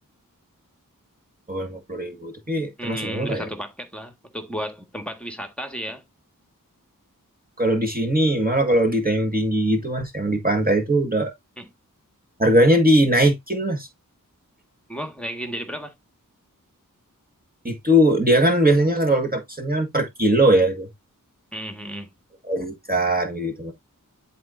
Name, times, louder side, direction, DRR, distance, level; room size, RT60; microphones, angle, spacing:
voice 1, 1.5-3.5 7.6-11.3 12.4-13.9 17.6-20.9 22.4-23.7, right 1 dB, 25° right, 1.7 m, -20 dB
voice 2, 2.8-6.0 11.6-11.7 14.9-15.9 21.5-22.1, equal, 5° left, 1.6 m, -33 dB
11.0 x 4.3 x 2.6 m
wide cardioid pair, 60°, 34 cm